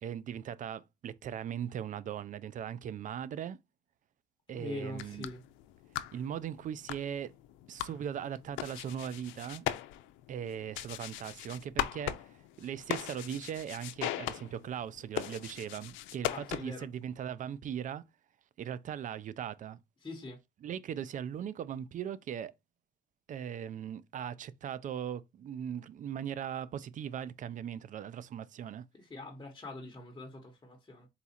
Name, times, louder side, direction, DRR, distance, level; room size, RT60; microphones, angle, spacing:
voice 1, 0.0-3.6 4.5-5.3 6.1-7.3 7.7-9.7 10.3-18.0 18.6-19.8 20.6-22.5 23.3-28.8, right 9 dB, 45° right, 0.4 m, -39 dB
voice 2, 4.5-5.4 16.3-16.9 20.0-20.4 29.0-31.1, left 2 dB, 20° left, 1.1 m, -43 dB
sound 1, 4.8-16.9, left 13 dB, 80° left, 0.5 m, -40 dB
4.0 x 2.4 x 4.2 m
cardioid pair, 95°, 19 cm